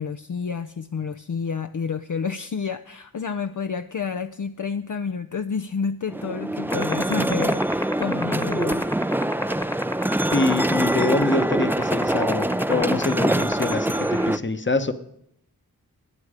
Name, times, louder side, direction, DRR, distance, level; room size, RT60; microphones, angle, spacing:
voice 1, 0.0-8.9, left 5 dB, 55° left, 9 dB, 0.5 m, -29 dB
sound 1, 6.1-14.4, right 1 dB, 5° right, 0.4 m, -24 dB
sound 2, 6.7-14.3, left 1 dB, 10° left, 1.2 m, -26 dB
voice 2, 10.3-14.9, left 3 dB, 30° left, 11 dB, 1.0 m, -25 dB
19.5 x 8.6 x 5.0 m, 0.74 s
wide cardioid pair, 50°, 38 cm